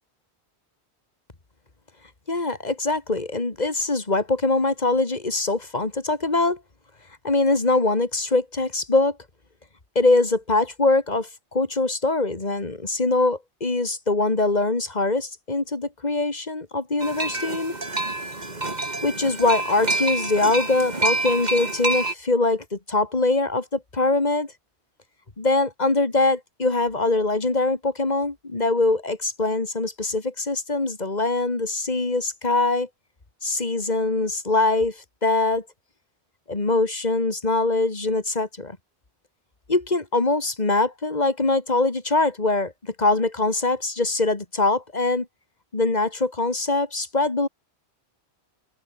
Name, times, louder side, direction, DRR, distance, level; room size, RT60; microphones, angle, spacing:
voice 1, 2.3-6.6 7.2-9.2 10.0-17.7 19.0-24.5 25.4-32.9 33.4-35.6 36.5-38.8 39.7-45.3 45.7-47.5, left 2 dB, 40° left, 2.3 m, -23 dB
sound 1, 17.0-22.1, right 2 dB, 40° right, 2.9 m, -27 dB
open air
omnidirectional pair, 1.1 m